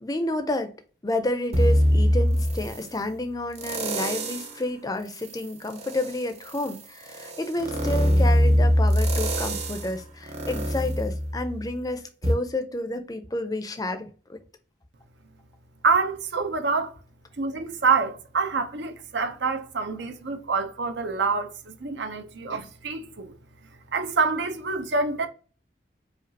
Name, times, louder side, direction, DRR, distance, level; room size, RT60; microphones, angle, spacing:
voice 1, 0.0-0.7 1.0-14.4, left 1 dB, 20° left, 0.5 m, -30 dB
sound 1, 1.5-2.9 3.5-4.6 5.1-11.8 12.2-12.3, equal, 35° right, 0.8 m, -23 dB
voice 2, 15.8-17.0 17.4-23.3 23.9-25.3, right 4 dB, 75° right, 0.6 m, -26 dB
5.0 x 2.4 x 2.7 m
head